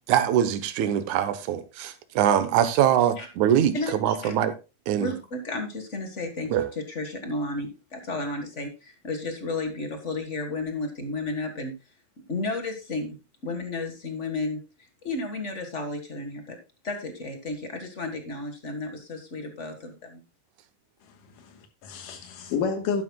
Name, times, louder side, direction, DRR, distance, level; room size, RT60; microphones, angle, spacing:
voice 1, 0.1-4.5 4.9-5.1 6.5-6.7, right 10 dB, 70° right, 2.3 m, -23 dB
voice 2, 3.7-4.3 5.0-11.7 12.3-14.6 15.0-16.6 16.8-20.2, left 2 dB, 40° left, 1.1 m, -33 dB
voice 3, 21.1-23.0, left 6 dB, 85° left, 2.9 m, -31 dB
12.0 x 11.0 x 2.3 m
omnidirectional pair, 3.7 m